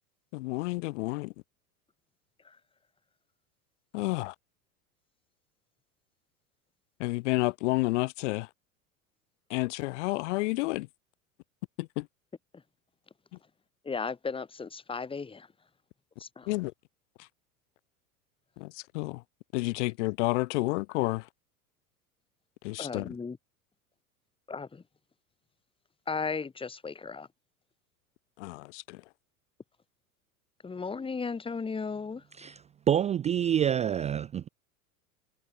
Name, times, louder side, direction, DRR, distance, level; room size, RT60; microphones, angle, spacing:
voice 1, 0.3-1.3 3.9-4.3 7.0-8.5 9.5-10.9 11.8-12.1 16.5-16.7 17.2-17.3 18.6-19.2 19.5-21.3 22.6-23.1 28.4-29.0, left 23 dB, 55° left, 1.0 m, -30 dB
voice 2, 13.8-15.5 16.2-16.5 22.8-23.4 24.5-24.8 26.1-27.3 30.6-32.2, left 5 dB, 10° left, 1.4 m, -35 dB
voice 3, 32.9-34.5, right 9 dB, 15° right, 0.5 m, -27 dB
figure-of-eight pair, 80°, 43 cm